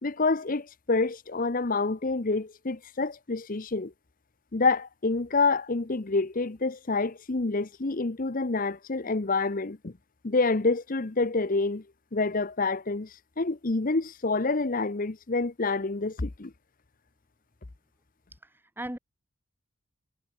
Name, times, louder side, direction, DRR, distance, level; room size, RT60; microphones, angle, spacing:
voice 1, 0.0-3.9 4.5-9.9 10.2-11.8 12.1-16.5, left 3 dB, 40° left, 0.8 m, -27 dB
voice 2, 18.3-19.0, right 1 dB, 10° right, 1.9 m, -38 dB
head